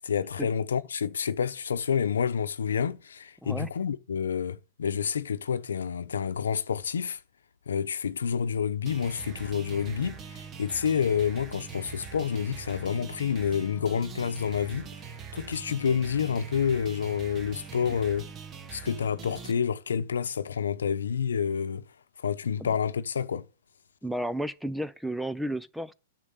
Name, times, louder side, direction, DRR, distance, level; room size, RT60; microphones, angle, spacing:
voice 1, 0.0-7.2 7.7-14.9 15.3-18.3 18.7-21.8 22.2-23.5, left 7 dB, 85° left, 0.8 m, -29 dB
sound 1, 8.9-19.5, right 6 dB, 25° right, 1.1 m, -43 dB
voice 2, 24.0-25.9, right 1 dB, ahead, 0.5 m, -32 dB
10.0 x 6.5 x 8.3 m
hypercardioid pair, 130°, 0 cm